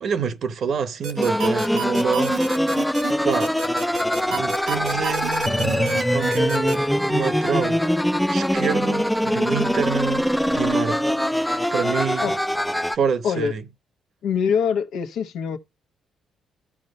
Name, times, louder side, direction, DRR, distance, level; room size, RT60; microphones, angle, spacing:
voice 1, 0.0-2.4 3.2-3.5 4.3-7.8 8.3-11.1 11.7-12.3 12.8-13.6, right 7 dB, 60° right, 0.9 m, -27 dB
sound 1, 1.0-6.8, right 4 dB, 90° right, 1.8 m, -30 dB
sound 2, 1.2-13.0, equal, 5° left, 0.4 m, -22 dB
voice 2, 14.2-15.6, left 7 dB, 80° left, 1.1 m, -24 dB
12.5 x 4.4 x 5.3 m
cardioid pair, 110°, 0 cm